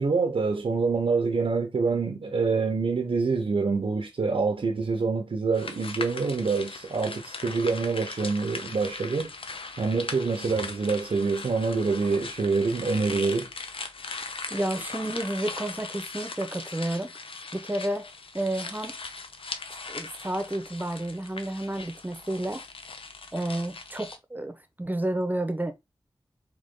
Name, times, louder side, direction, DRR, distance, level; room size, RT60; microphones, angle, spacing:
voice 1, 0.0-9.3 9.8-13.5, right 4 dB, 80° right, 0.8 m, -26 dB
sound 1, 5.5-24.2, left 4 dB, 75° left, 0.6 m, -39 dB
voice 2, 14.5-17.1 17.5-18.1 18.3-19.0 19.9-22.6 23.3-25.7, right 1 dB, 20° right, 0.9 m, -31 dB
4.0 x 3.1 x 3.7 m
cardioid pair, 45°, 9 cm